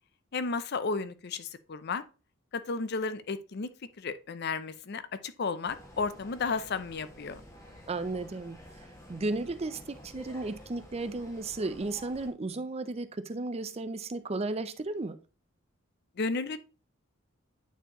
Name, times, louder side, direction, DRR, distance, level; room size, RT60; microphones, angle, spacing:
voice 1, 0.3-2.0 2.7-3.7 4.0-7.4 16.2-16.6, left 4 dB, 55° left, 0.6 m, -33 dB
sound 1, 5.6-12.3, equal, 15° left, 1.8 m, -51 dB
voice 2, 7.9-8.6 9.1-15.2, right 2 dB, 30° right, 0.5 m, -34 dB
9.2 x 4.5 x 3.0 m
head